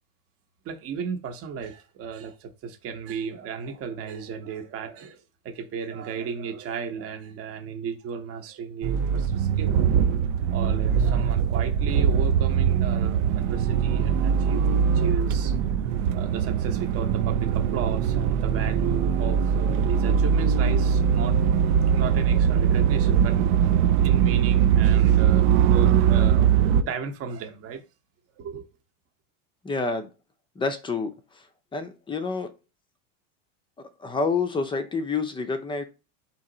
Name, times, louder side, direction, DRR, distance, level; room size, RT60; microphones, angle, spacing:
voice 1, 0.6-9.8 10.5-15.5 16.1-23.4 24.0-27.8 28.4-28.6, right 6 dB, 35° right, 0.8 m, -35 dB
sound 1, 8.8-26.8, right 8 dB, 60° right, 0.5 m, -21 dB
voice 2, 29.6-30.1 30.6-31.1 31.7-32.5 34.0-35.8, left 4 dB, 15° left, 0.5 m, -28 dB
4.3 x 2.9 x 3.8 m
supercardioid pair, 125°, 39 cm